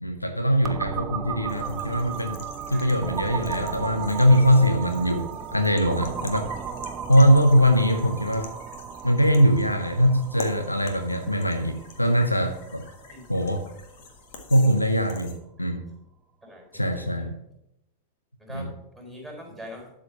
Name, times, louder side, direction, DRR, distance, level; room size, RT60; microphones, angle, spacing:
voice 1, 0.0-6.5 7.1-8.5 9.0-12.8 13.3-13.7 14.5-15.9 16.7-17.4 18.5-18.7, equal, 85° left, 6 dB, 0.7 m, -22 dB
sound 1, 0.6-14.2, right 7 dB, 25° right, 0.8 m, -36 dB
sound 2, 1.5-15.4, left 4 dB, 50° left, 1.6 m, -46 dB
voice 2, 3.3-3.6 13.1-13.2 15.6-15.7 16.4-17.3 18.4-19.9, equal, ahead, 1 dB, 4.2 m, -44 dB
12.0 x 4.9 x 5.5 m, 0.84 s
figure-of-eight pair, 90°, 0 cm